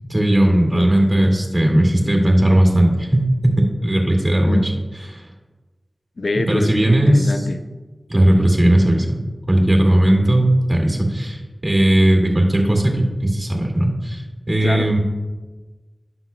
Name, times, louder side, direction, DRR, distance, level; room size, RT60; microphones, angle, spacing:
voice 1, 0.1-4.7 5.1-5.3 6.3-7.3 8.1-9.2 9.5-15.0, right 1 dB, 35° right, 1 dB, 2.1 m, -17 dB
voice 2, 0.7-1.3 4.4-4.7 6.2-7.6 14.6-15.0, left 2 dB, 85° left, 7 dB, 0.5 m, -26 dB
16.0 x 5.8 x 2.3 m, 1.2 s
wide cardioid pair, 45°, 0 cm